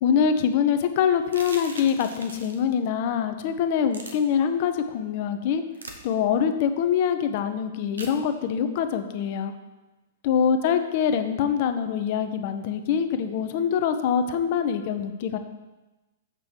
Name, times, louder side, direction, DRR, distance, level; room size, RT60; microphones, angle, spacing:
voice 1, 0.0-5.6 6.0-9.5 10.2-15.4, left 7 dB, 50° left, 9 dB, 0.8 m, -24 dB
sound 1, 1.3-2.6 3.9-4.1 5.7-6.0 8.0-8.2, right 2 dB, 80° right, 1.1 m, -39 dB
7.6 x 6.2 x 4.7 m, 1.1 s
figure-of-eight pair, 110°, 0 cm